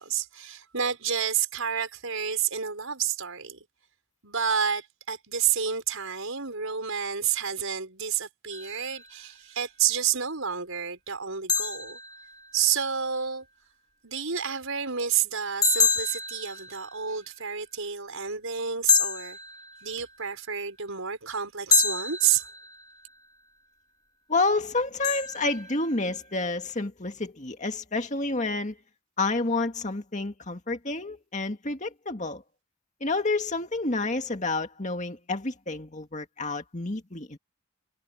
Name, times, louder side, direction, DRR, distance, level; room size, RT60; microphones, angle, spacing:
voice 1, 0.0-3.7 4.2-12.0 12.5-13.5 14.0-19.4 19.8-22.4, right 8 dB, 80° right, 5.2 m, -29 dB
sound 1, 8.5-9.3 11.5-12.9 15.6-17.4 18.9-20.3 21.7-23.1 25.0-26.3, left 5 dB, 20° left, 1.6 m, -28 dB
voice 2, 24.3-28.8 29.2-32.4 33.0-37.4, left 3 dB, 35° left, 2.0 m, -29 dB
head